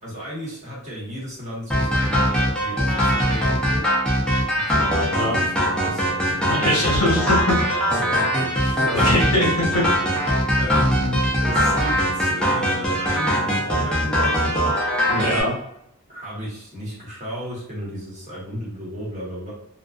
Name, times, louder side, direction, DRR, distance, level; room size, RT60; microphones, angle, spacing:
voice 1, 0.0-3.8 4.7-6.9 7.6-9.1 10.3-14.6 16.1-19.5, equal, 30° right, -6 dB, 1.1 m, -33 dB
sound 1, 1.7-15.4, equal, 5° left, 0.5 m, -21 dB
voice 2, 6.4-7.4 8.9-9.8 15.1-15.5, left 1 dB, 70° left, -3 dB, 1.0 m, -22 dB
2.4 x 2.2 x 2.3 m, 0.77 s
head